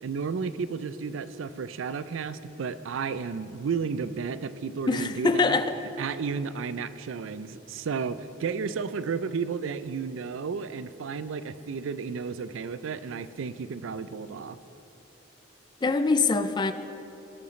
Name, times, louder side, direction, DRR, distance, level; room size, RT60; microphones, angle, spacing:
voice 1, 0.0-5.6 6.0-14.6, right 5 dB, 80° right, 14 dB, 0.4 m, -32 dB
voice 2, 4.9-5.7 15.8-16.7, left 4 dB, 20° left, 10 dB, 0.3 m, -24 dB
17.5 x 7.8 x 3.1 m, 3.0 s
head